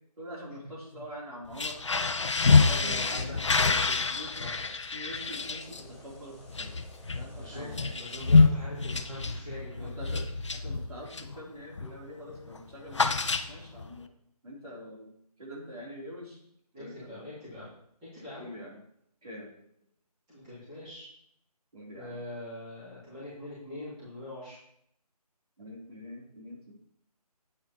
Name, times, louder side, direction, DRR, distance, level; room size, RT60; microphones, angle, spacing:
voice 1, 0.2-1.8 2.6-3.2 4.1-4.3 4.9-6.8 7.1-8.0 9.8-10.2 10.5-14.1 14.4-15.1 15.4-16.4 16.8-17.2 18.4-18.7 19.2-19.5 21.7-22.2 25.6-26.7, equal, 65° right, -3 dB, 3.4 m, -44 dB
sound 1, 1.5-11.4 11.8-12.0 12.3-13.9, left 4 dB, 50° left, 0.5 m, -27 dB
voice 2, 2.4-4.0 4.4-4.7 7.3-10.0 16.7-17.7 18.1-18.5 20.3-21.1 21.9-24.6, left 1 dB, 10° right, -12 dB, 2.7 m, -43 dB
sound 2, 2.5-8.3, equal, 20° left, 1.9 m, -56 dB
8.8 x 8.1 x 3.0 m, 0.71 s
figure-of-eight pair, 175°, 20 cm